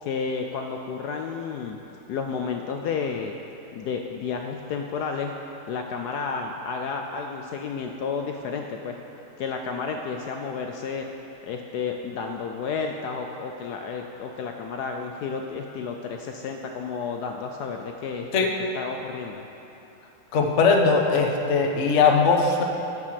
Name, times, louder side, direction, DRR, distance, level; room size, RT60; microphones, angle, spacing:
voice 1, 0.0-1.8 2.1-3.4 3.7-5.3 5.7-9.0 9.4-11.1 11.4-18.5 18.7-19.4, left 5 dB, 80° left, 3 dB, 0.9 m, -31 dB
voice 2, 20.3-22.6, left 4 dB, 50° left, 2 dB, 0.9 m, -20 dB
11.0 x 5.7 x 7.4 m, 3.0 s
omnidirectional pair, 2.3 m